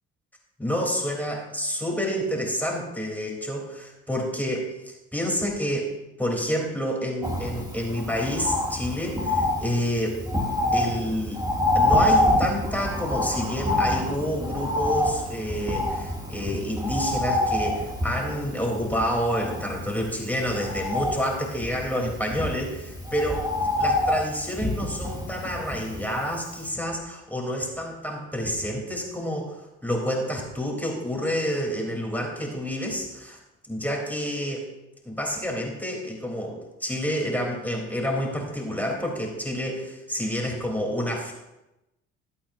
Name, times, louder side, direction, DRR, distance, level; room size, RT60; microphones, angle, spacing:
voice 1, 0.6-10.2 10.7-11.4 11.7-23.5 23.8-33.4 33.7-34.7 35.0-41.3, equal, 5° left, -1 dB, 3.3 m, -29 dB
Bird, 7.2-26.3 26.7-26.8, left 1 dB, 10° right, 2.4 m, -27 dB
21.0 x 8.8 x 2.7 m, 0.95 s
hypercardioid pair, 55°, 37 cm